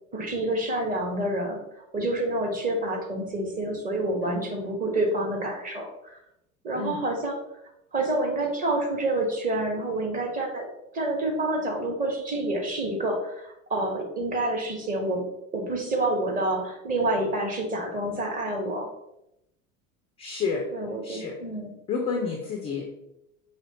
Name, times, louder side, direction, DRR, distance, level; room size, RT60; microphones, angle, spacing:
voice 1, 0.1-6.2 6.6-7.3 7.9-10.7 10.9-15.3 15.5-18.9 20.7-21.7, right 1 dB, 20° right, 1 dB, 1.0 m, -28 dB
voice 2, 20.2-20.6 21.0-21.4 21.9-22.9, left 5 dB, 15° left, 1 dB, 0.3 m, -30 dB
4.9 x 3.0 x 2.8 m, 0.84 s
figure-of-eight pair, 75°, 44 cm